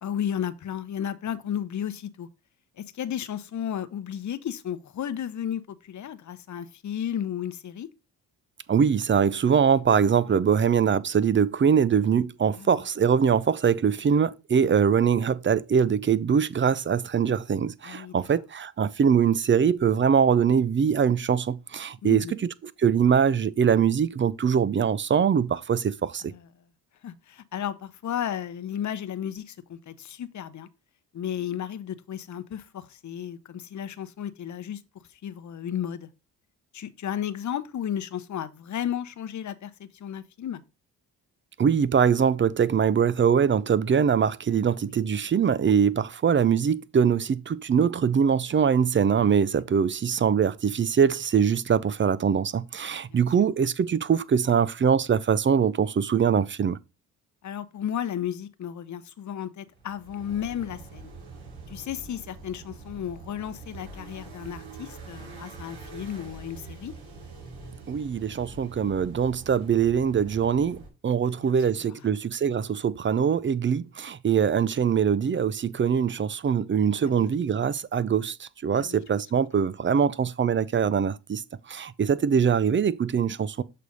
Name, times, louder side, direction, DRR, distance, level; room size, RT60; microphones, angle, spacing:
voice 1, 0.0-2.3 2.8-7.9 12.5-12.8 17.8-18.2 22.0-22.4 26.3-26.4 27.0-30.7 31.1-34.8 35.1-36.1 36.7-40.6 53.1-53.2 57.4-61.1 61.7-66.9 71.3-71.5 71.8-71.9 77.0-77.3 78.7-79.0, left 9 dB, 45° left, 0.8 m, -33 dB
voice 2, 8.7-22.5 22.8-26.3 41.6-56.8 67.9-81.4 81.7-83.6, right 7 dB, 30° right, 0.5 m, -23 dB
sound 1, 59.7-70.9, right 4 dB, 60° right, 3.3 m, -44 dB
6.5 x 3.3 x 5.4 m
hypercardioid pair, 50°, 41 cm